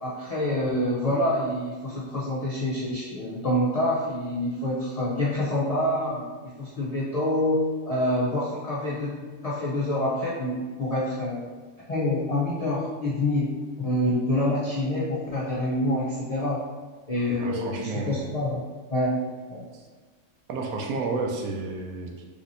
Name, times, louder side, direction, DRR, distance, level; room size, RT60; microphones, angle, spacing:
voice 1, 0.0-6.2 6.6-9.2 9.4-11.4 11.9-16.6 17.1-18.6 18.9-19.2 19.5-19.7, left 1 dB, 70° left, -7 dB, 0.3 m, -26 dB
voice 2, 17.4-18.3 20.5-22.2, right 3 dB, 90° right, 1 dB, 1.0 m, -31 dB
3.3 x 2.9 x 2.6 m, 1.4 s
omnidirectional pair, 1.4 m